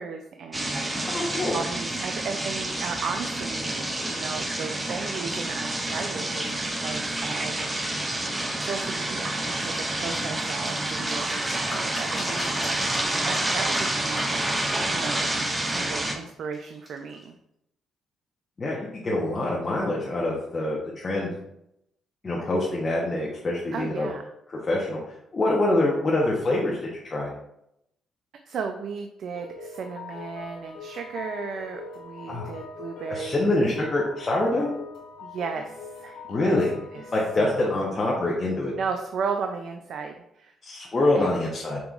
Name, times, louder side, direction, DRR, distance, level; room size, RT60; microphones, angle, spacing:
voice 1, 0.0-6.5 6.7-7.9 8.6-15.3 15.7-17.4 23.7-24.2 28.4-33.9 35.2-36.6 36.9-37.8 38.7-40.5 41.1-41.3, right 5 dB, 65° right, 5 dB, 0.3 m, -35 dB
sound 1, 0.5-16.2, right 1 dB, 15° right, 0.6 m, -28 dB
voice 2, 1.1-1.6 10.2-10.4 18.6-21.4 22.2-24.1 24.7-27.3 32.3-32.5 33.1-34.7 36.3-36.7 37.1-38.7 40.6-41.8, left 2 dB, 35° left, -4 dB, 0.8 m, -25 dB
sound 2, 10.0-17.2, left 1 dB, 20° left, 1.1 m, -41 dB
sound 3, 29.3-37.4, left 4 dB, 85° left, 1.0 m, -42 dB
5.1 x 2.9 x 2.4 m, 0.79 s
cardioid pair, 90°, 0 cm